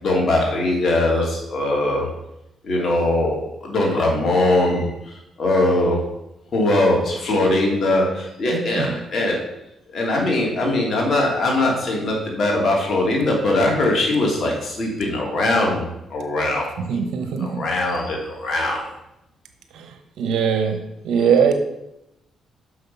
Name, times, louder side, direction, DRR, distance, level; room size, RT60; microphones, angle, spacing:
voice 1, 0.0-2.1 2.6-6.0 6.5-9.5 9.9-16.7 17.3-18.9 21.2-21.3, left 1 dB, 55° left, -1 dB, 2.9 m, -21 dB
voice 2, 8.5-8.9 16.9-17.6 20.2-20.8 21.0-21.5, right 7 dB, 80° right, 7 dB, 1.0 m, -20 dB
6.3 x 5.9 x 5.5 m, 0.86 s
cardioid pair, 70°, 0 cm